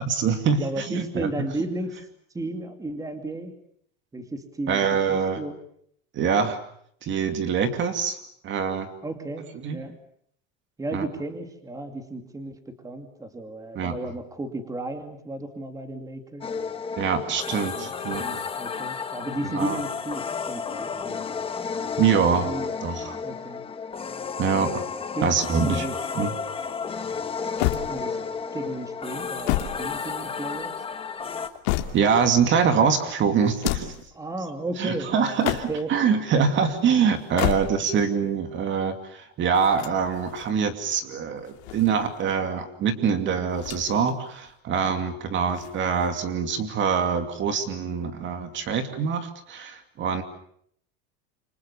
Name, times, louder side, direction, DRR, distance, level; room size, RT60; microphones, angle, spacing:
voice 1, 0.0-1.3 4.7-5.4 6.1-6.6 7.0-8.2 8.4-8.9 9.6-9.8 10.9-11.0 13.7-14.0 17.0-18.4 19.5-19.8 22.0-22.5 22.8-23.2 24.4-24.8 25.2-25.9 26.1-26.3 31.9-33.9 34.8-50.2, right 6 dB, 35° right, 8 dB, 2.6 m, -24 dB
voice 2, 0.6-2.1 2.3-3.6 4.1-5.6 9.0-9.9 10.8-16.5 17.5-21.3 22.4-22.7 23.2-23.6 25.1-25.3 25.6-26.0 27.9-28.2 28.5-30.8 34.2-35.9, right 2 dB, 10° right, 7 dB, 2.5 m, -34 dB
sound 1, 16.4-31.5, left 5 dB, 15° left, 1.4 m, -32 dB
sound 2, 27.6-28.4 29.2-30.6 31.2-32.3 33.4-34.1 35.2-36.0 37.2-38.0 39.5-40.5 41.4-42.3 43.5-44.1 44.4-44.5 45.5-46.3, left 16 dB, 75° left, 2.7 m, -31 dB
28.0 x 25.5 x 7.0 m, 0.67 s
cardioid pair, 150°, 32 cm